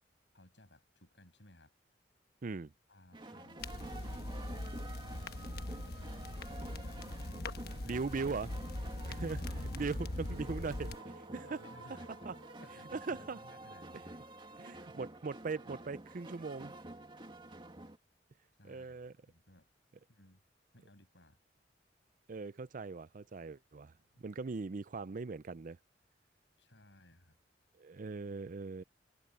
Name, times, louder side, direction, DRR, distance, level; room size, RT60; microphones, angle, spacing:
voice 1, 0.3-1.7 2.9-7.0 7.6-8.1 8.8-9.7 11.3-12.1 12.5-14.2 18.6-19.7 20.1-20.4 20.7-21.4 26.6-27.4, left 1 dB, 85° left, 6.5 m, -61 dB
voice 2, 2.4-2.7 7.9-8.5 9.1-9.4 9.7-10.9 11.5-11.6 12.2-12.3 12.9-13.4 14.6-16.7 18.6-19.1 22.3-23.9 24.2-25.8 27.8-28.8, right 4 dB, 50° right, 0.5 m, -39 dB
sound 1, 3.1-18.0, right 2 dB, 30° right, 2.1 m, -49 dB
sound 2, 3.6-11.0, left 1 dB, 60° left, 1.2 m, -41 dB
sound 3, 9.6-15.6, right 2 dB, 80° right, 1.3 m, -57 dB
head